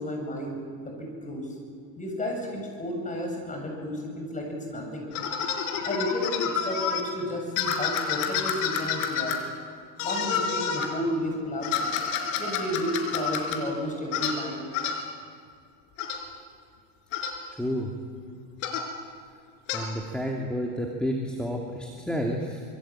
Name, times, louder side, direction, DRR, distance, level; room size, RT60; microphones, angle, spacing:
voice 1, 0.0-1.5 2.0-5.1 5.8-9.4 10.0-11.9 12.4-14.6 14.9-15.0, left 1 dB, 20° left, 1 dB, 7.8 m, -32 dB
sound 1, 5.1-7.0 7.6-9.4 10.0-10.9 11.6-13.6 14.1-14.4 14.7-15.0 16.0-16.2 17.1-17.4 18.6-18.9 19.7-19.8, left 7 dB, 75° left, 4.3 m, -29 dB
voice 2, 17.6-17.9 19.7-22.6, equal, ahead, 0 dB, 2.6 m, -30 dB
25.5 x 23.5 x 9.0 m, 2.2 s
supercardioid pair, 125°, 41 cm